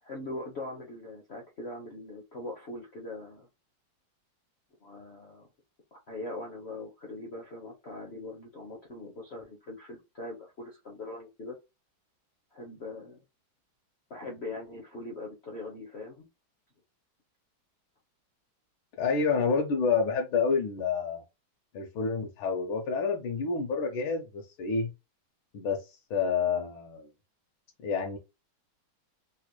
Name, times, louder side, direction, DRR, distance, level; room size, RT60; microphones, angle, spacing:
voice 1, 0.0-3.5 4.8-5.5 5.9-11.6 12.5-13.2 14.1-16.3, left 2 dB, 60° left, 0.6 m, -41 dB
voice 2, 19.0-21.2 21.7-24.9 25.5-27.1 27.8-28.2, left 5 dB, 75° left, 1.5 m, -28 dB
3.9 x 2.9 x 2.2 m
omnidirectional pair, 2.3 m